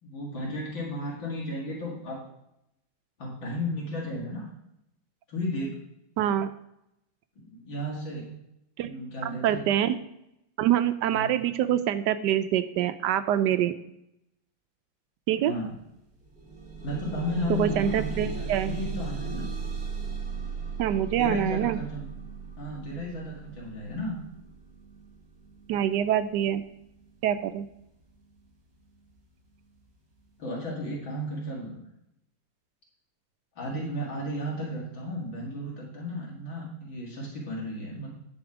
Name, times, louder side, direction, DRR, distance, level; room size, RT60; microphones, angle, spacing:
voice 1, 0.0-2.2 3.2-4.5 5.3-5.7 7.4-8.2 8.8-9.7 11.1-11.3 15.4-15.7 16.8-19.5 21.2-22.0 22.6-24.2 30.4-31.8 33.6-38.1, left 1 dB, 75° left, -4 dB, 2.9 m, -34 dB
voice 2, 6.2-6.5 8.8-8.9 9.2-10.0 10.6-13.7 15.3-15.5 17.5-18.7 20.8-21.8 25.7-26.6 27.2-27.7, right 11 dB, 75° right, 11 dB, 1.1 m, -25 dB
sound 1, 15.5-15.6 16.0-27.0 27.8-27.9 28.4-28.5, right 5 dB, 45° right, 2.1 m, -37 dB
10.5 x 5.3 x 4.9 m, 0.80 s
omnidirectional pair, 2.2 m